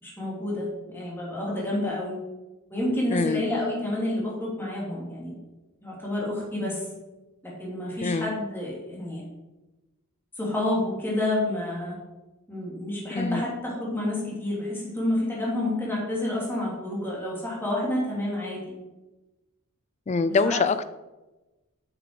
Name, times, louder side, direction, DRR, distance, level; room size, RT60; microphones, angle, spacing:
voice 1, 0.0-2.2 2.7-5.4 5.8-6.9 7.4-9.2 10.4-12.0 12.5-18.6 20.3-20.6, left 1 dB, 10° left, -5 dB, 2.5 m, -29 dB
voice 2, 3.1-3.4 8.0-8.3 13.1-13.4 20.1-20.9, left 4 dB, 30° left, 14 dB, 0.4 m, -24 dB
8.0 x 6.2 x 4.7 m, 1.1 s
head